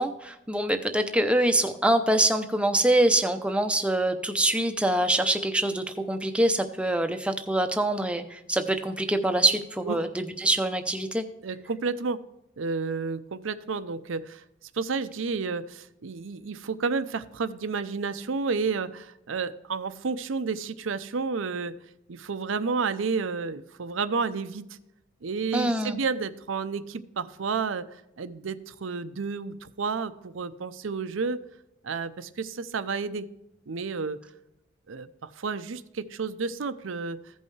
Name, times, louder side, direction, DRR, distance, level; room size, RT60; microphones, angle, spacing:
voice 1, 0.0-11.2 25.5-26.0, right 1 dB, 5° right, 6 dB, 0.6 m, -25 dB
voice 2, 11.4-12.2 12.6-14.4 14.7-21.8 22.1-24.7 25.2-31.4 31.8-33.3 33.7-34.2 34.9-37.2, right 4 dB, 85° right, 13 dB, 0.6 m, -31 dB
15.5 x 5.4 x 3.2 m, 0.92 s
head